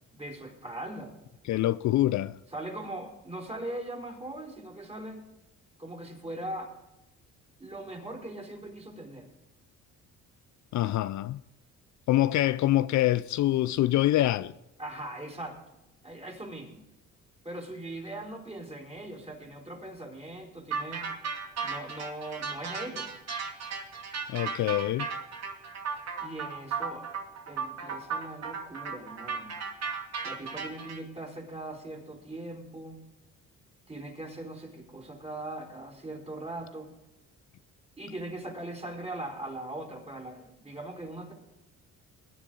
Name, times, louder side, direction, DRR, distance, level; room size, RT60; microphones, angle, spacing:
voice 1, 0.1-1.1 1.9-2.0 2.5-5.2 5.8-6.7 7.6-9.3 14.8-15.6 16.0-16.8 17.4-21.1 21.6-23.1 26.2-27.1 27.5-29.5 30.2-33.0 33.9-36.9 38.0-41.3, right 1 dB, 20° right, 4.5 m, -40 dB
voice 2, 1.4-2.4 10.7-11.4 12.1-14.5 24.3-25.1, left 14 dB, 60° left, 0.5 m, -25 dB
sound 1, 20.7-31.0, right 5 dB, 55° right, 2.7 m, -35 dB
20.5 x 10.5 x 3.9 m
cardioid pair, 100°, 32 cm